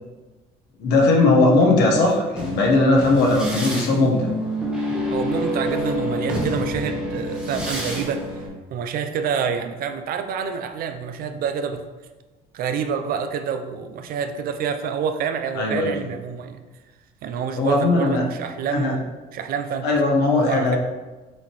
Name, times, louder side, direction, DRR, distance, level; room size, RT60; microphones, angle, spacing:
voice 1, 0.8-4.3 15.6-15.9 17.6-18.2 18.7-18.9 19.8-20.8, left 2 dB, 80° left, -1 dB, 1.1 m, -18 dB
sound 1, 2.0-8.5, equal, 5° right, 1.0 m, -27 dB
voice 2, 5.1-8.3 8.7-11.9 12.5-16.6 17.2-19.0 19.3-19.9 20.4-20.8, right 7 dB, 60° right, 8 dB, 0.4 m, -27 dB
6.2 x 2.8 x 3.0 m, 1.2 s
cardioid pair, 110°, 17 cm